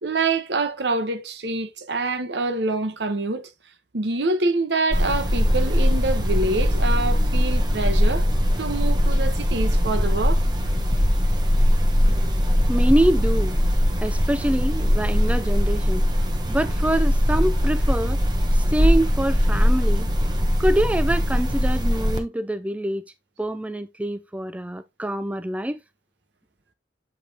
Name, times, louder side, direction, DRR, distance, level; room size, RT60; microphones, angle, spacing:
voice 1, 0.0-3.5 3.9-8.3 8.6-10.4, right 3 dB, 70° right, 1.0 m, -26 dB
sound 1, 4.9-22.2, equal, 25° right, 1.0 m, -21 dB
voice 2, 12.7-13.6 14.0-16.1 16.5-18.2 18.5-20.1 20.6-23.0 23.4-25.8, right 1 dB, 10° right, 0.3 m, -25 dB
7.7 x 5.0 x 2.8 m
head